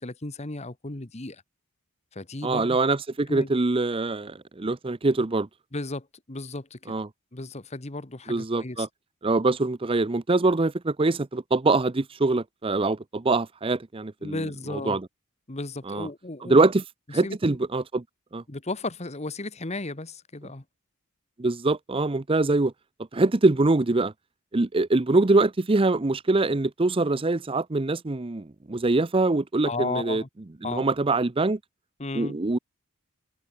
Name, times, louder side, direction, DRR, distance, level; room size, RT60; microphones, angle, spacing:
voice 1, 0.0-1.4 2.1-2.8 3.3-3.5 5.7-6.9 7.3-8.9 14.2-15.0 15.5-16.6 17.1-17.4 18.5-20.6 29.6-30.3 30.6-30.9 32.0-32.4, left 2 dB, 30° left, 1.3 m, -34 dB
voice 2, 2.4-5.5 6.9-7.1 8.3-8.9 9.2-14.4 14.7-15.0 15.9-16.1 16.4-16.8 17.1-18.0 18.3-18.4 21.4-22.7 23.1-24.1 24.5-30.2 30.6-31.6 32.1-32.6, right 2 dB, 25° right, 0.6 m, -24 dB
head